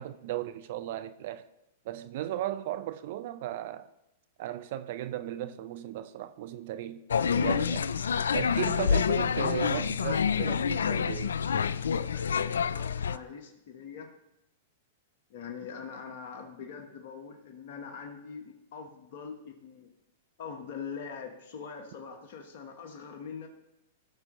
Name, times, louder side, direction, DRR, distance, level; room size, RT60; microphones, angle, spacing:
voice 1, 0.0-1.5 1.8-3.9 4.4-7.1 7.4-7.9 8.3-11.4, right 13 dB, 60° right, 0.5 m, -36 dB
sound 1, 7.1-13.2, left 7 dB, 85° left, 0.3 m, -27 dB
voice 2, 11.9-14.1 15.3-19.9 20.4-23.5, left 6 dB, 60° left, 1.1 m, -43 dB
14.5 x 6.1 x 3.1 m
hypercardioid pair, 115°, 0 cm